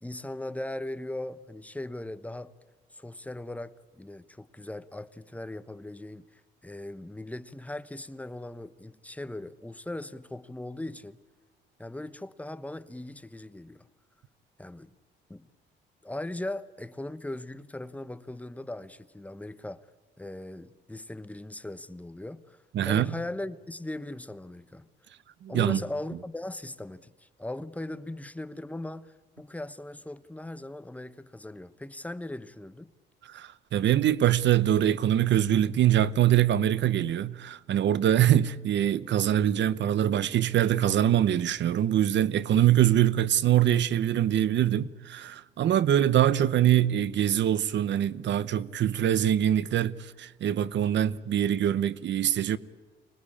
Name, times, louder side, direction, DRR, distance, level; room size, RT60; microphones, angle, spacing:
voice 1, 0.0-2.5 2.9-11.2 11.8-13.9 14.6-14.9 15.3-15.5 16.0-19.9 20.2-24.9 25.5-32.9, left 1 dB, 5° left, 0.9 m, -39 dB
voice 2, 22.7-23.1 25.4-25.8 33.2-52.6, right 11 dB, 65° right, 0.9 m, -24 dB
25.0 x 20.0 x 8.6 m
cardioid pair, 90°, 20 cm